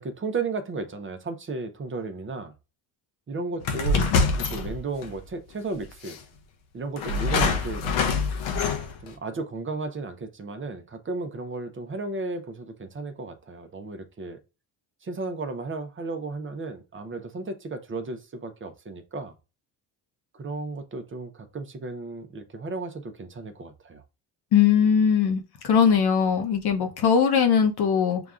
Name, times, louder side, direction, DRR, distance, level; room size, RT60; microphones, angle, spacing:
voice 1, 0.0-2.5 3.3-6.2 6.7-7.8 9.0-14.4 15.0-19.4 20.3-24.0, right 3 dB, 25° right, 0.7 m, -34 dB
sound 1, 3.6-5.2 6.0-6.2 7.0-9.1, left 4 dB, 85° left, 0.8 m, -25 dB
voice 2, 24.5-28.2, left 7 dB, 55° left, 0.9 m, -20 dB
6.8 x 2.3 x 2.4 m
supercardioid pair, 85°, 47 cm